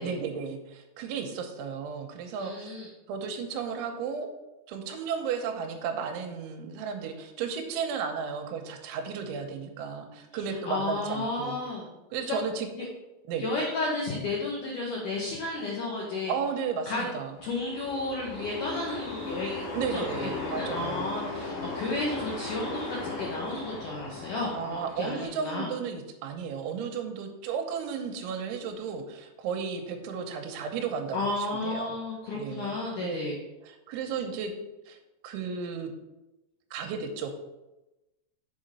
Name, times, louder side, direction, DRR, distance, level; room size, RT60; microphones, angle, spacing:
voice 1, 0.0-2.7 3.1-4.3 4.7-11.6 12.1-12.7 13.3-13.5 16.3-17.4 19.7-21.1 24.5-32.0 32.3-33.2 33.6-34.5 34.9-35.0 35.2-35.9 36.7-37.3, right 6 dB, 80° right, 5 dB, 3.2 m, -34 dB
voice 2, 2.4-2.9 10.7-11.9 12.2-12.4 13.4-16.3 16.9-17.1 17.4-25.7 31.1-33.4, left 2 dB, 80° left, -3 dB, 1.8 m, -32 dB
sound 1, 17.4-25.3, left 3 dB, 45° left, 4.0 m, -37 dB
7.1 x 4.9 x 5.4 m, 1.0 s
omnidirectional pair, 5.4 m